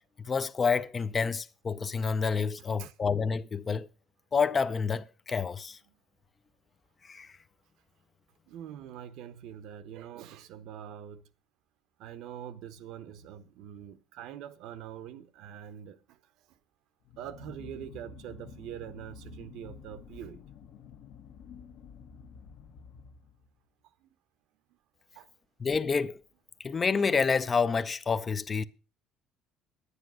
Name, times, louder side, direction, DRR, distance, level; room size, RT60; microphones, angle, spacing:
voice 1, 0.2-3.9 4.3-5.8 7.0-7.3 25.6-26.2 26.6-28.6, left 5 dB, 25° left, 0.5 m, -28 dB
voice 2, 8.5-11.2 12.0-16.2 17.2-20.4 24.0-24.1 25.1-25.3 28.6-28.7, right 10 dB, 70° right, 1.0 m, -44 dB
sound 1, 17.0-23.6, left 5 dB, 65° left, 1.2 m, -50 dB
10.0 x 9.8 x 6.2 m
cardioid pair, 145°, 0 cm